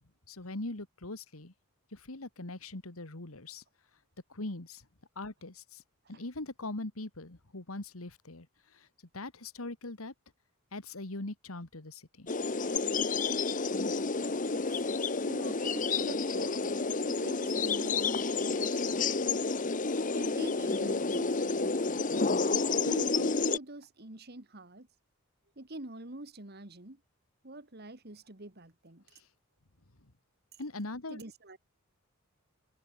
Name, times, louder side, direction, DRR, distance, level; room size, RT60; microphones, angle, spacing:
voice 1, 0.3-1.5 1.9-3.6 4.3-4.8 5.2-5.8 6.1-8.5 8.7-8.9 9.1-10.1 10.7-12.3 29.2-29.3 30.0-30.1 30.6-31.2, left 2 dB, 85° left, 2.1 m, -41 dB
sound 1, 12.3-23.6, left 4 dB, 35° left, 1.0 m, -30 dB
voice 2, 14.5-14.9 15.3-19.1 20.1-22.0 22.8-24.9 25.6-27.0 27.4-29.0 31.1-31.6, right 2 dB, 50° right, 2.2 m, -46 dB
head